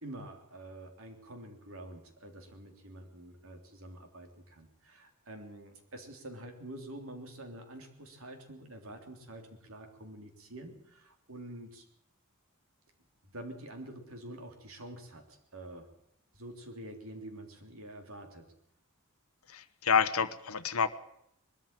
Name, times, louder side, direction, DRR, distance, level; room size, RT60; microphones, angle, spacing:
voice 1, 0.0-11.9 13.2-15.9 16.3-18.5, right 1 dB, 70° right, 5 dB, 3.4 m, -47 dB
voice 2, 19.5-20.9, left 6 dB, 85° left, 11 dB, 1.0 m, -28 dB
21.0 x 13.5 x 9.1 m, 0.78 s
head